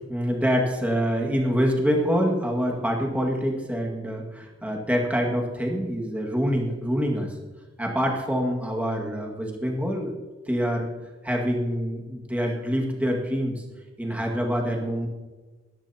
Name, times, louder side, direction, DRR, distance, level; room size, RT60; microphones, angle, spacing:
voice 1, 0.0-7.3 7.8-10.1 10.5-10.9 11.2-13.6 14.0-15.1, equal, 5° right, 0 dB, 1.9 m, -26 dB
20.5 x 10.5 x 2.9 m, 1.3 s
head